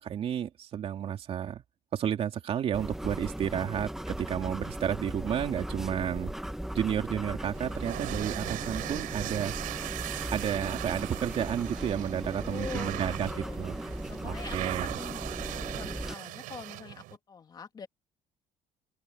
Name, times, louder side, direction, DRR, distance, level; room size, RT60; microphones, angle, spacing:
voice 1, 0.0-1.6 1.9-6.3 6.7-9.5 10.3-13.3 13.6-13.8 14.2-14.9, right 9 dB, 45° right, 3.1 m, -31 dB
sound 1, 2.7-16.1, right 1 dB, 5° right, 1.0 m, -37 dB
sound 2, 7.5-17.2, right 18 dB, 90° right, 6.1 m, -39 dB
voice 2, 12.4-13.6 14.1-17.9, left 6 dB, 30° left, 2.8 m, -44 dB
open air
cardioid pair, 145°, 14 cm